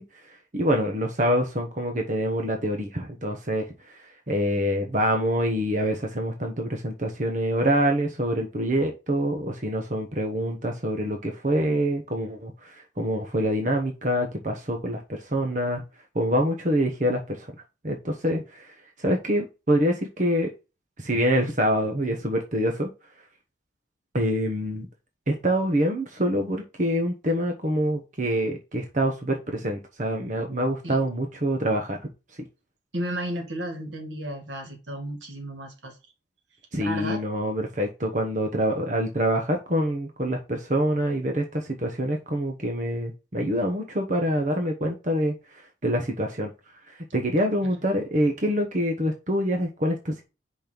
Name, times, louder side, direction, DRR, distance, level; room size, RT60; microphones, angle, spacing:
voice 1, 0.0-15.8 16.1-17.5 17.8-20.5 21.0-22.9 24.1-24.9 25.3-32.0 36.7-46.5 46.9-50.2, equal, 40° right, 3 dB, 1.1 m, -26 dB
voice 2, 32.9-36.0 36.8-37.2, right 1 dB, 85° right, 3 dB, 2.0 m, -33 dB
5.3 x 4.2 x 6.0 m, 0.29 s
head